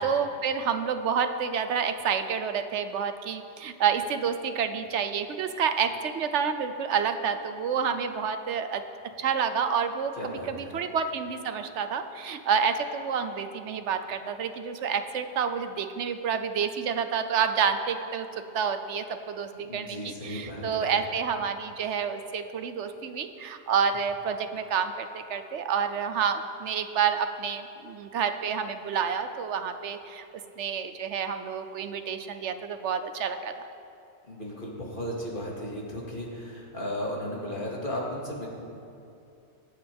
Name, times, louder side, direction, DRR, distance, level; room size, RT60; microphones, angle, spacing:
voice 1, 0.0-8.8 9.2-18.3 18.5-30.2 30.6-33.5, right 7 dB, 75° right, 9 dB, 1.0 m, -29 dB
voice 2, 10.2-10.8 19.5-21.0 21.8-21.9 34.2-38.5, equal, 45° left, -3 dB, 2.4 m, -35 dB
24.0 x 8.5 x 3.5 m, 2.6 s
omnidirectional pair, 1.2 m